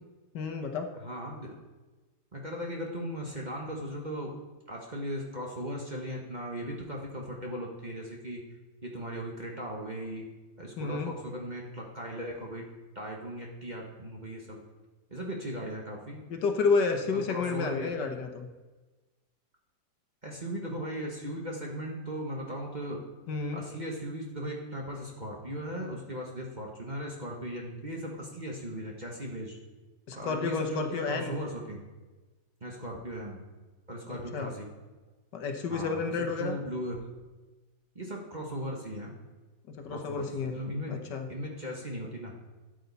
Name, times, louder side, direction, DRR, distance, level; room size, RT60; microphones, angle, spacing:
voice 1, 0.3-0.9 10.8-11.1 16.3-18.5 23.3-23.6 30.1-31.3 34.1-34.5 35.3-36.6 39.8-40.6 40.9-41.3, left 4 dB, 70° left, 4 dB, 1.6 m, -30 dB
voice 2, 0.9-1.6 2.3-4.4 4.7-8.4 8.8-10.3 10.6-12.7 12.9-14.6 15.1-16.2 17.0-17.9 20.2-23.0 23.5-29.6 30.1-31.8 32.6-33.4 33.9-34.7 35.7-37.0 37.9-39.1 39.9-41.0 41.3-42.4, equal, 25° right, -1 dB, 1.3 m, -38 dB
12.5 x 8.1 x 4.1 m, 1.2 s
omnidirectional pair, 2.0 m